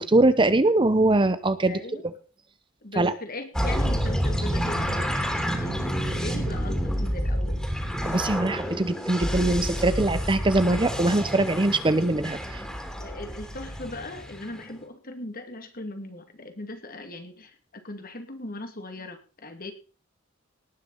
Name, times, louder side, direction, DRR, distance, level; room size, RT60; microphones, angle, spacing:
voice 1, 0.0-2.1 3.0-3.1 8.1-12.6, right 2 dB, 25° right, 13 dB, 0.8 m, -22 dB
voice 2, 1.7-2.0 2.8-7.8 13.0-19.7, left 1 dB, 45° left, 7 dB, 2.3 m, -39 dB
sound 1, 3.5-14.7, equal, 5° left, 3.1 m, -29 dB
18.5 x 6.7 x 5.5 m, 0.37 s
head